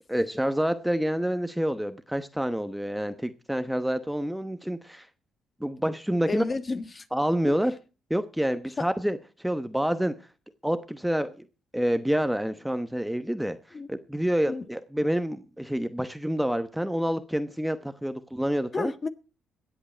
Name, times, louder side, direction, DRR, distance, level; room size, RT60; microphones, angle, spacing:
voice 1, 0.1-5.1 5.6-6.4 7.1-7.7 8.1-10.1 10.6-11.5 11.7-13.6 13.9-18.9, equal, 5° right, 1.0 m, -28 dB
voice 2, 6.3-7.0 8.8-8.9 13.7-13.9 14.5-14.7 18.7-19.1, left 4 dB, 30° left, 1.5 m, -31 dB
21.0 x 8.1 x 4.4 m
cardioid pair, 90°, 0 cm